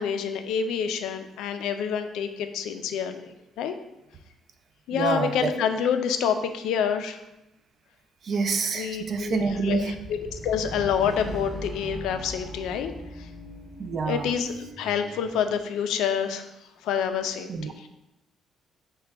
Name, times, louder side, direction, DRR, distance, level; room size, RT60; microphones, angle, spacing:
voice 1, 0.0-3.8 4.9-7.2 8.7-12.9 13.2-13.3 14.1-16.5 16.8-17.9, left 7 dB, 85° left, 7 dB, 0.3 m, -28 dB
voice 2, 4.9-5.5 8.2-9.9 13.8-14.3 17.5-17.7, right 4 dB, 45° right, 7 dB, 0.4 m, -27 dB
sound 1, 9.1-15.6, right 1 dB, 15° right, 0.8 m, -40 dB
5.8 x 2.2 x 3.3 m, 0.93 s
cardioid pair, 135°, 0 cm